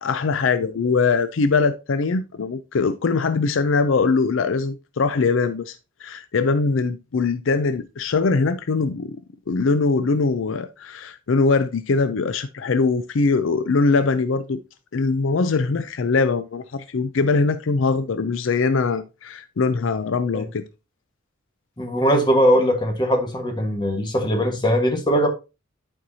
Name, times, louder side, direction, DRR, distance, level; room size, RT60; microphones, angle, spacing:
voice 1, 0.0-9.2 9.5-14.6 14.9-20.7, left 4 dB, 70° left, 0.5 m, -22 dB
voice 2, 21.8-25.3, equal, 20° left, 1.4 m, -20 dB
11.0 x 4.5 x 2.7 m
head